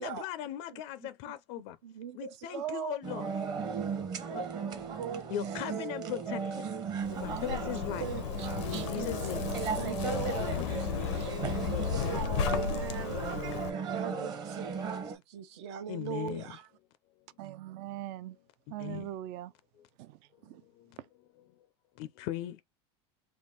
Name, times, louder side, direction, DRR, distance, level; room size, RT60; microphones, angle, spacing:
voice 1, 0.0-1.8 2.1-3.3 4.3-4.5 5.3-6.7 7.1-8.1 8.6-9.5 10.4-10.9 11.7-12.4 15.9-16.4 18.7-19.1 20.5-21.0 22.0-22.6, left 12 dB, 50° left, 0.4 m, -39 dB
voice 2, 0.7-1.1 1.8-3.3 4.3-4.4 4.7-5.3 6.8-6.9 8.0-9.1 9.5-13.3 13.9-16.6, right 9 dB, 75° right, 0.9 m, -41 dB
sound 1, 3.0-15.2, right 5 dB, 30° right, 0.8 m, -36 dB
Zipper (clothing), 7.0-13.7, left 8 dB, 90° left, 0.7 m, -34 dB
voice 3, 17.4-18.4 18.7-19.5 20.0-20.2 20.4-20.6, right 14 dB, 50° right, 0.4 m, -41 dB
3.6 x 2.4 x 3.9 m
supercardioid pair, 160°, 15 cm